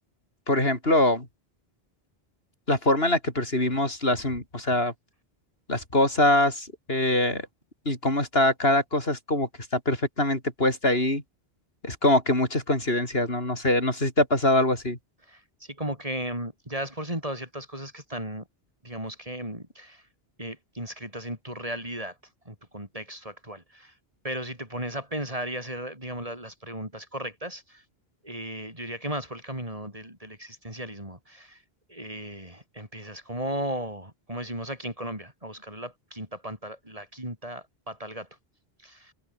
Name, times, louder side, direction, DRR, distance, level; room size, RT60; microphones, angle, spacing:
voice 1, 0.5-1.3 2.7-4.9 5.7-7.5 7.9-11.2 11.8-15.0, left 1 dB, 70° left, 6.3 m, -23 dB
voice 2, 15.2-18.5 18.8-20.0 20.4-22.2 22.4-23.9 24.2-27.8 28.2-31.6 31.9-38.3 38.8-39.1, right 1 dB, 35° right, 6.1 m, -36 dB
omnidirectional pair, 1.1 m